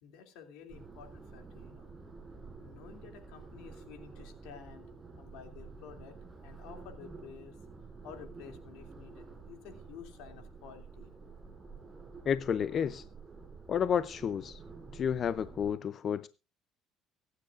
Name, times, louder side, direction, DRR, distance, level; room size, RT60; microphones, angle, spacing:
voice 1, 0.0-1.9 2.6-11.3, left 7 dB, 85° left, 2.8 m, -52 dB
sound 1, 0.7-15.8, right 4 dB, 25° right, 7.7 m, -50 dB
voice 2, 12.3-13.0 13.7-14.6 14.9-16.3, left 8 dB, 45° left, 0.5 m, -31 dB
23.5 x 9.6 x 2.5 m
cardioid pair, 105°, 0 cm